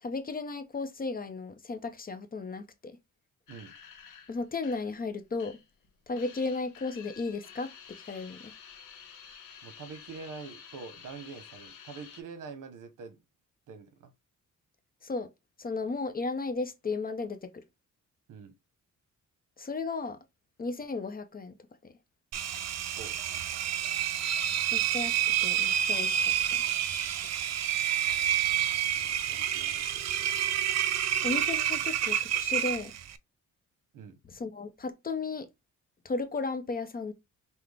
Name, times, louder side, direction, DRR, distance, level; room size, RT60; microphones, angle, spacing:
voice 1, 0.0-3.0 4.3-5.6 6.1-8.5 15.0-15.3 15.6-17.6 19.6-20.2 20.6-21.6 21.8-21.9 24.7-26.3 31.2-32.9 34.2-35.5 36.0-37.1, left 3 dB, 30° left, 0.6 m, -35 dB
sound 1, 3.5-5.9 6.1-12.2, left 7 dB, 90° left, 1.0 m, -51 dB
voice 2, 9.6-13.2 13.7-14.1 18.3-18.5 23.0-23.2 28.9-30.4 33.9-34.2, right 5 dB, 75° right, 1.0 m, -45 dB
Engine, 22.3-33.2, right 10 dB, 55° right, 0.5 m, -29 dB
5.8 x 2.1 x 3.4 m
cardioid pair, 135°, 32 cm